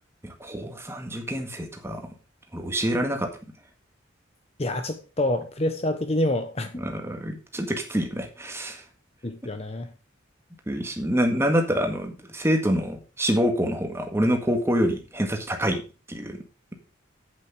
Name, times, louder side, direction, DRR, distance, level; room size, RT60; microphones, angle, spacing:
voice 1, 0.2-2.1 2.5-3.3 6.8-8.8 10.7-15.8 16.1-16.4, equal, 15° right, 4 dB, 1.7 m, -26 dB
voice 2, 4.6-6.8 9.2-9.9, left 1 dB, 30° left, 8 dB, 0.9 m, -27 dB
8.7 x 7.7 x 5.1 m, 0.32 s
head